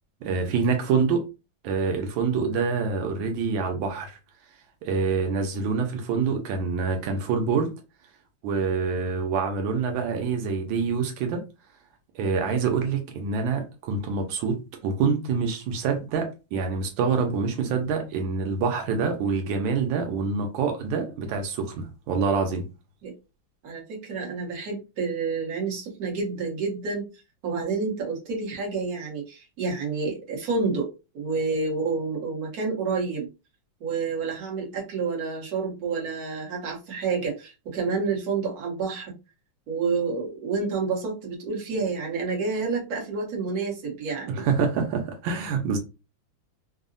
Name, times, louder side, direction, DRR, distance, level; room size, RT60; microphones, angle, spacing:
voice 1, 0.2-1.3 1.6-4.2 4.8-7.7 8.4-11.4 12.1-22.6 44.3-45.8, right 5 dB, 90° right, 1.4 m, -26 dB
voice 2, 23.6-27.1 27.4-33.3 33.8-39.1 39.7-44.4, right 4 dB, 55° right, 1.4 m, -29 dB
3.6 x 2.0 x 2.5 m
omnidirectional pair, 2.1 m